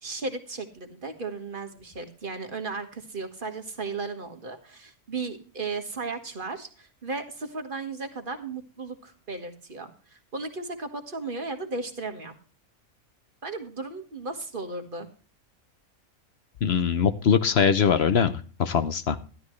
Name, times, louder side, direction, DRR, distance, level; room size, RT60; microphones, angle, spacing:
voice 1, 0.0-12.3 13.4-15.1, right 3 dB, 35° right, 5 dB, 1.7 m, -35 dB
voice 2, 16.6-19.2, left 7 dB, 50° left, 11 dB, 0.9 m, -22 dB
12.5 x 12.0 x 3.2 m, 0.38 s
omnidirectional pair, 1.5 m